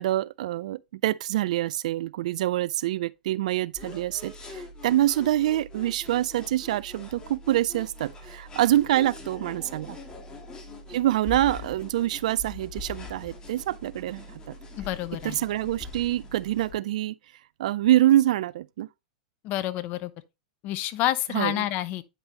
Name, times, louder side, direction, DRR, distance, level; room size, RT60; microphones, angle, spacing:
voice 1, 0.0-10.0 10.9-14.5 15.2-17.1 17.6-18.9 21.3-21.6, right 13 dB, 65° right, 0.3 m, -25 dB
sound 1, 3.7-16.7, left 2 dB, 20° left, 2.0 m, -43 dB
voice 2, 14.8-15.4 19.4-20.1 20.6-22.0, left 14 dB, 45° left, 0.8 m, -28 dB
9.4 x 5.4 x 2.8 m
hypercardioid pair, 100°, 4 cm